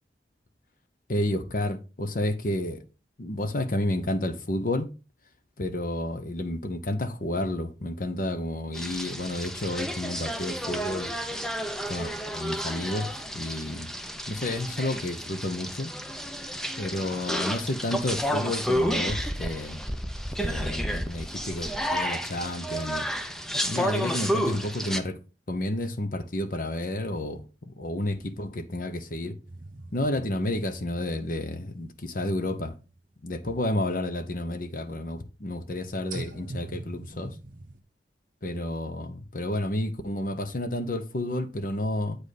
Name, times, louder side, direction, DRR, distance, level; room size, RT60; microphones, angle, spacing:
voice 1, 1.1-2.8 3.2-4.9 5.6-11.1 11.9-13.1 13.3-13.9 14.3-15.9 16.8-19.8 20.4-23.1 23.6-25.2 25.5-29.3 29.9-32.7 33.2-37.3 38.4-42.2, left 1 dB, 50° left, 0.9 m, -31 dB
sound 1, 8.7-25.0, equal, 5° left, 0.5 m, -31 dB
sound 2, 29.4-33.5 33.9-34.0 36.1-37.8, right 2 dB, 50° right, 1.1 m, -43 dB
8.1 x 5.2 x 4.1 m
head